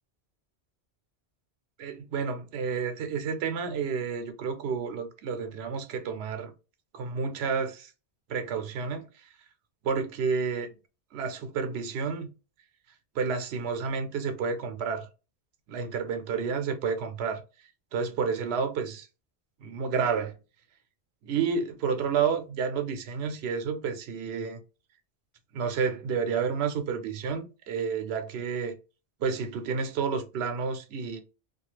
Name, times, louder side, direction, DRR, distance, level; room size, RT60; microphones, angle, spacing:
voice 1, 1.8-6.5 6.9-7.9 8.3-9.0 9.8-10.7 11.1-12.3 13.2-15.1 15.7-17.4 17.9-19.1 19.6-20.3 21.2-24.6 25.5-28.8 29.2-31.2, right 6 dB, 80° right, 0.8 m, -30 dB
2.4 x 2.3 x 3.0 m
omnidirectional pair, 1.1 m